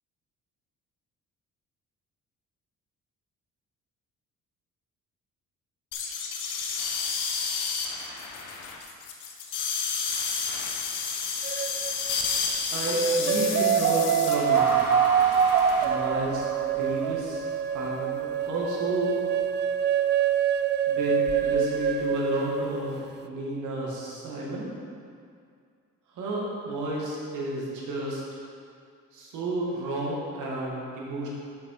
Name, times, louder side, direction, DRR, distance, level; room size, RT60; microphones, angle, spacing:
sound 1, 5.9-15.8, left 5 dB, 90° left, 1.0 m, -31 dB
sound 2, 11.4-12.2 12.9-22.9, right 8 dB, 35° right, 0.4 m, -25 dB
voice 1, 12.7-14.8 15.8-17.5 17.7-19.2 20.9-23.0 23.2-24.7 26.1-28.2 29.1-31.3, right 1 dB, 80° right, -4 dB, 1.9 m, -31 dB
sound 3, 14.5-17.8, right 1 dB, 5° right, 1.2 m, -35 dB
6.8 x 6.6 x 4.8 m, 2.3 s
cardioid pair, 90°, 30 cm